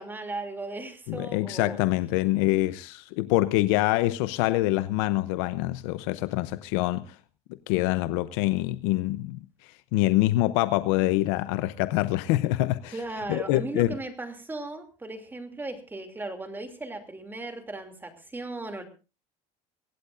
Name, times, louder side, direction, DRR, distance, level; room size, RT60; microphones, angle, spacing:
voice 1, 0.0-1.8 12.9-18.8, right 2 dB, 15° right, 2.8 m, -37 dB
voice 2, 1.1-7.1 7.7-9.4 9.9-12.9 13.3-13.9, left 17 dB, 90° left, 0.7 m, -25 dB
23.5 x 16.5 x 2.6 m
cardioid pair, 120°, 15 cm